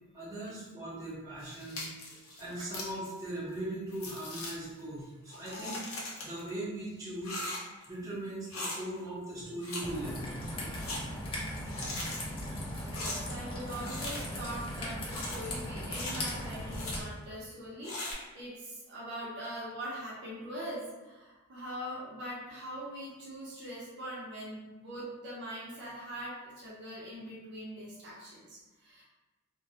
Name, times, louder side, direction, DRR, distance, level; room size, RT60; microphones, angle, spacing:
voice 1, 0.1-7.4 7.9-11.0, right 1 dB, 15° right, -10 dB, 0.8 m, -40 dB
sound 1, 1.4-3.0 3.6-3.7 3.9-4.5 5.3-6.5 7.2-7.8 8.5-8.8 9.6-9.8 10.1-11.0 11.6-12.2 12.8-13.2 13.7-14.4 15.1-15.4 15.9-16.2 16.7-17.0 17.8-18.1, left 2 dB, 75° left, 0.6 m, -39 dB
Raindrop / Trickle dribble, 9.8-17.0, left 1 dB, 25° left, 0.4 m, -38 dB
voice 2, 12.8-29.0, equal, 55° right, -6 dB, 0.6 m, -42 dB
2.2 x 2.0 x 2.7 m, 1.1 s
head